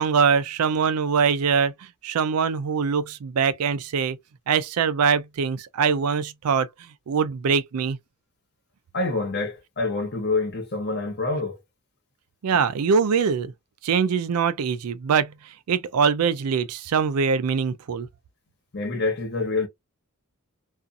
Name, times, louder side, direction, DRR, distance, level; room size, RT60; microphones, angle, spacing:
voice 1, 0.0-1.7 2.0-4.2 4.5-6.7 7.1-8.0 12.4-13.5 13.8-15.3 15.7-18.1, right 6 dB, 85° right, 0.4 m, -23 dB
voice 2, 8.9-11.6 18.7-19.7, left 3 dB, 50° left, 1.1 m, -26 dB
2.6 x 2.4 x 2.3 m
head